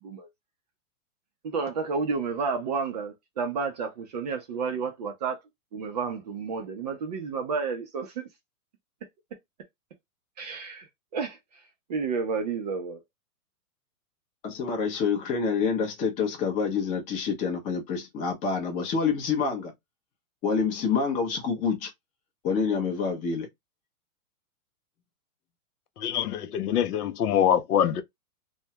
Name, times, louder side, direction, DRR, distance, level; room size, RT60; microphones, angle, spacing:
voice 1, 1.4-5.4 5.7-8.2 10.4-10.9 11.1-11.4 11.9-13.0, right 5 dB, 30° right, 0.4 m, -31 dB
voice 2, 14.4-19.7 20.4-21.9 22.4-23.5, left 5 dB, 20° left, 0.5 m, -27 dB
voice 3, 26.0-28.0, left 9 dB, 90° left, 0.6 m, -24 dB
2.2 x 2.1 x 2.7 m
hypercardioid pair, 140°, 44 cm